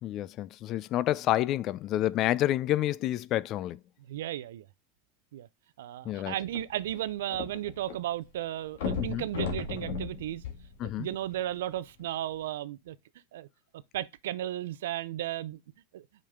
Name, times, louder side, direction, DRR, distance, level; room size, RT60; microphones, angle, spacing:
voice 1, 0.0-3.8 6.0-6.3 9.0-9.3 10.8-11.1, left 14 dB, 45° left, 0.4 m, -29 dB
voice 2, 4.1-4.7 5.3-5.5 5.8-10.4 10.8-13.0 13.3-13.5 13.9-15.6 15.9-16.0, right 12 dB, 80° right, 0.5 m, -34 dB
sound 1, 6.5-8.0 8.2-8.3 8.7-11.3 12.0-12.1, left 5 dB, 75° left, 1.9 m, -35 dB
5.4 x 5.2 x 3.6 m
hypercardioid pair, 105°, 0 cm